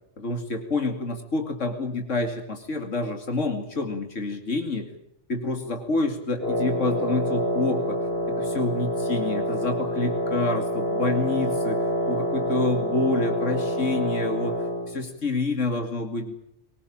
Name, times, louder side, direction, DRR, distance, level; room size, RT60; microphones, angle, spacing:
voice 1, 0.2-4.9 5.3-16.3, left 2 dB, 85° left, 5 dB, 2.8 m, -28 dB
Wind instrument woodwind instrument, 6.4-15.0, equal, 55° left, 4.3 m, -27 dB
25.0 x 19.5 x 8.9 m, 0.75 s
omnidirectional pair, 1.2 m